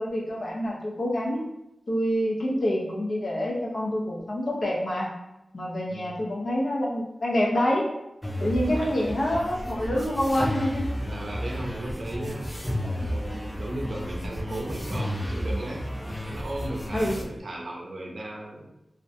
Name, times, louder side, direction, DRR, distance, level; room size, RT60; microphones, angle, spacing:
voice 1, 0.0-1.4 1.9-5.1 5.5-7.9 8.4-11.0 16.9-17.2, equal, 65° left, -3 dB, 0.6 m, -27 dB
voice 2, 5.8-6.2 8.4-8.9 11.0-12.6 12.9-15.8 16.2-18.7, right 1 dB, 75° right, -1 dB, 0.5 m, -36 dB
sound 1, 8.2-17.2, equal, 10° left, 0.3 m, -32 dB
2.5 x 2.1 x 2.6 m, 0.89 s
wide cardioid pair, 70°, 0 cm